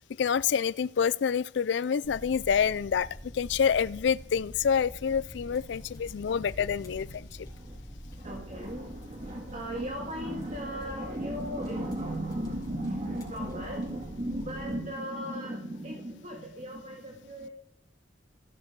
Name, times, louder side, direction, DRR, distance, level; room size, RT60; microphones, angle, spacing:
voice 1, 0.2-7.5, left 7 dB, 65° left, 0.4 m, -27 dB
sound 1, 2.0-14.7, equal, 20° left, 4.8 m, -45 dB
voice 2, 7.4-17.5, right 1 dB, 35° right, 1.9 m, -36 dB
15.5 x 9.9 x 4.6 m
head